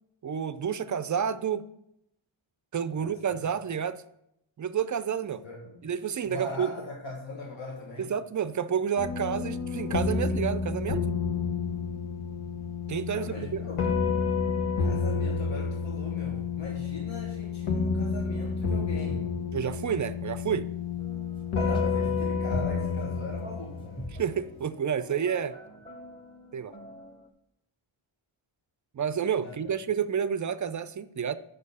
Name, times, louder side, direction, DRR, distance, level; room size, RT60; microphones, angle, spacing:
voice 1, 0.2-1.7 2.7-4.0 4.6-5.4 5.8-6.7 8.0-11.1 12.9-13.6 19.5-20.7 24.1-25.5 26.5-26.7 28.9-31.4, right 7 dB, 40° right, 14 dB, 0.4 m, -30 dB
voice 2, 2.9-3.4 5.4-5.8 6.2-8.1 13.1-13.8 14.8-19.3 21.5-24.2 29.4-29.6, left 2 dB, 60° left, -2 dB, 1.4 m, -40 dB
sound 1, 9.0-24.4, left 5 dB, 85° left, 1.3 m, -30 dB
sound 2, 21.0-27.3, equal, 10° left, 1.0 m, -46 dB
6.4 x 5.3 x 5.4 m, 0.79 s
wide cardioid pair, 95°, 49 cm